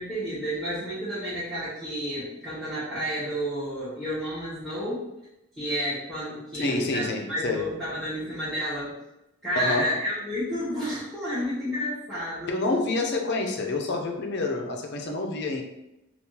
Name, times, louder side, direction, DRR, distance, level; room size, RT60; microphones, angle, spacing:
voice 1, 0.0-5.0 5.6-8.9 9.4-12.5, equal, ahead, -13 dB, 1.2 m, -31 dB
voice 2, 6.5-7.6 9.5-10.0 12.5-15.6, left 2 dB, 50° left, 3 dB, 0.5 m, -28 dB
3.6 x 2.4 x 2.7 m, 0.90 s
head